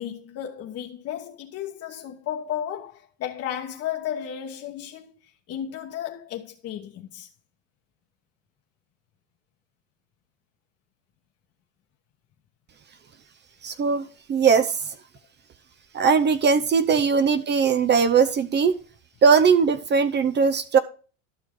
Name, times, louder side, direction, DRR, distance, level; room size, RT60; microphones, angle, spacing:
voice 1, 0.0-5.1 5.5-7.3, left 10 dB, 40° left, 1.2 m, -33 dB
voice 2, 13.6-15.0 15.9-18.8 19.2-20.8, right 6 dB, 25° right, 0.7 m, -20 dB
12.0 x 6.2 x 3.7 m
hypercardioid pair, 100°, 39 cm